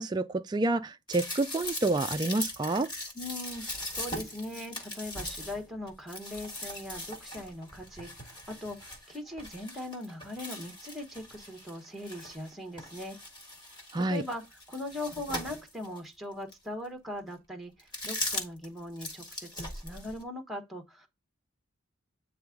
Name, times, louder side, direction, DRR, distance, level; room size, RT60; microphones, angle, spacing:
voice 1, 0.0-2.9 13.9-14.2, right 2 dB, 20° right, 0.3 m, -28 dB
sound 1, 1.1-12.5 12.8-16.0 16.5-16.6 17.8-18.7 19.0-20.2, left 1 dB, 20° left, 1.5 m, -40 dB
voice 2, 3.1-13.2 14.0-14.4 14.7-21.1, left 1 dB, ahead, 0.9 m, -40 dB
8.8 x 3.4 x 3.7 m
head